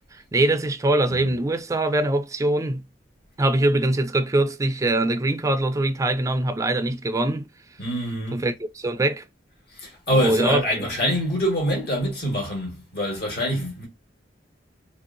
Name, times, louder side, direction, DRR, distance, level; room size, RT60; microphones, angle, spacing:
voice 1, 0.1-2.8 3.4-7.5 8.3-9.2 10.1-10.9, right 1 dB, 20° right, 0.3 m, -23 dB
voice 2, 7.8-8.4 9.7-13.9, equal, 60° left, 1.5 m, -25 dB
3.1 x 2.7 x 2.4 m
head